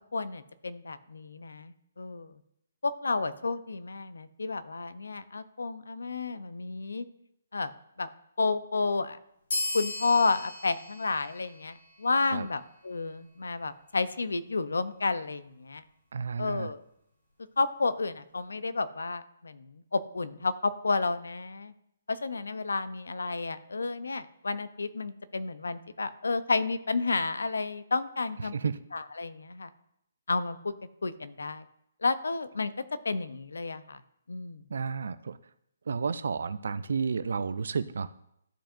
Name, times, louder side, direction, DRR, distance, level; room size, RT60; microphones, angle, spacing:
voice 1, 0.1-2.4 2.8-7.1 7.5-7.7 8.0-8.1 8.4-9.2 9.7-15.8 16.4-16.8 17.6-21.7 22.1-28.5 28.9-29.7 30.3-30.7 31.0-31.7 32.0-32.7 33.0-34.0 34.3-34.6, left 3 dB, 85° left, 13 dB, 0.5 m, -31 dB
sound 1, 9.5-12.5, left 2 dB, 70° left, 2.4 m, -37 dB
voice 2, 16.1-16.7 28.5-28.8 34.7-35.4 35.9-38.1, right 5 dB, 75° right, 15 dB, 0.4 m, -31 dB
12.5 x 4.5 x 2.5 m, 0.77 s
hypercardioid pair, 150°, 0 cm